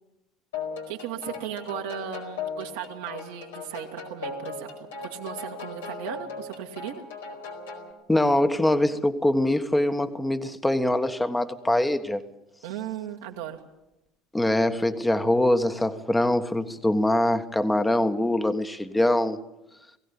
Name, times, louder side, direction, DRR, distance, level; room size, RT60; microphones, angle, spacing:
sound 1, 0.5-7.9, left 4 dB, 85° left, 4.7 m, -37 dB
voice 1, 0.9-7.0 12.6-13.6, right 10 dB, 80° right, 2.0 m, -36 dB
voice 2, 8.1-12.2 14.3-19.4, left 1 dB, 10° left, 1.5 m, -23 dB
20.5 x 16.5 x 8.6 m
hypercardioid pair, 75°, 0 cm